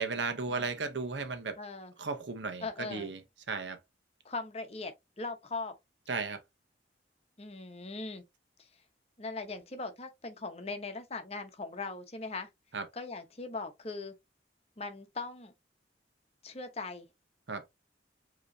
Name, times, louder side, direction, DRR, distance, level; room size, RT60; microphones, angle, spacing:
voice 1, 0.0-1.6 2.0-3.2 3.5-3.8 6.1-6.4 12.7-12.8 17.5-17.6, right 4 dB, 85° right, 1.0 m, -35 dB
voice 2, 1.6-1.9 2.6-3.1 4.2-5.8 7.4-8.2 8.6-8.7 9.2-12.5 12.9-14.1 14.8-15.5 16.4-17.1, left 3 dB, 35° left, 0.9 m, -40 dB
5.3 x 3.0 x 2.8 m
head